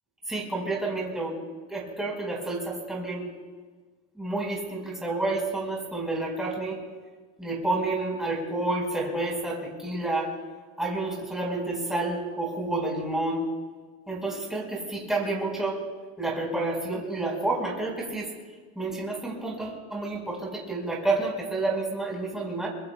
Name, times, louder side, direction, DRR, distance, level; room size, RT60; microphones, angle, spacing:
voice 1, 0.3-1.4 1.7-3.2 4.1-6.8 7.4-10.3 10.8-13.5 14.1-15.8 16.2-18.3 18.7-22.7, right 2 dB, ahead, -3 dB, 4.9 m, -29 dB
26.0 x 23.0 x 2.4 m, 1.4 s
cardioid pair, 130°, 34 cm